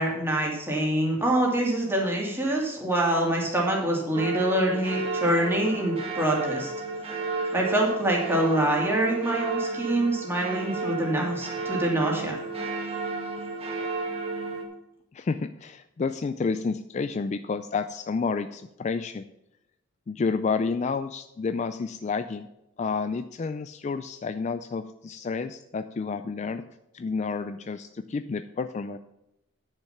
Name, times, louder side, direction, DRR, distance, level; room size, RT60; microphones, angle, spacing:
voice 1, 0.0-6.7 7.5-12.4, right 1 dB, 10° right, -2 dB, 2.5 m, -25 dB
sound 1, 4.1-14.6, right 3 dB, 30° right, 1.6 m, -32 dB
voice 2, 15.1-19.3 20.1-22.5 22.8-26.6 26.9-29.0, left 4 dB, 35° left, 11 dB, 0.3 m, -30 dB
10.5 x 6.6 x 5.7 m, 0.89 s
head